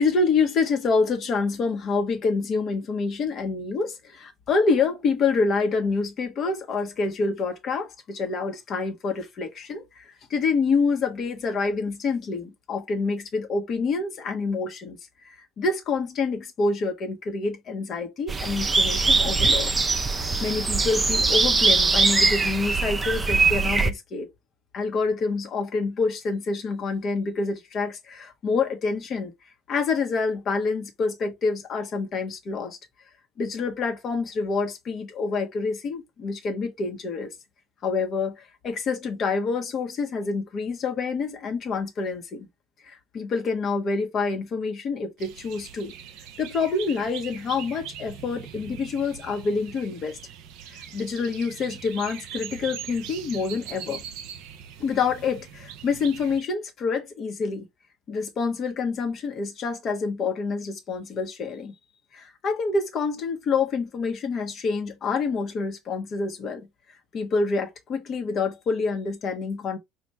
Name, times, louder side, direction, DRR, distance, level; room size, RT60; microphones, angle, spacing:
voice 1, 0.0-15.0 15.2-19.8 20.1-24.3 24.7-29.3 29.7-32.8 33.4-37.3 37.8-42.5 42.8-45.9 46.4-50.2 50.9-54.0 54.8-57.7 58.1-61.7 62.1-66.7 67.1-69.8, left 4 dB, 45° left, 1.2 m, -27 dB
sound 1, 18.3-23.9, right 3 dB, 20° right, 0.6 m, -22 dB
sound 2, 45.2-56.4, right 9 dB, 60° right, 0.6 m, -41 dB
5.2 x 2.5 x 3.3 m
hypercardioid pair, 65°, 0 cm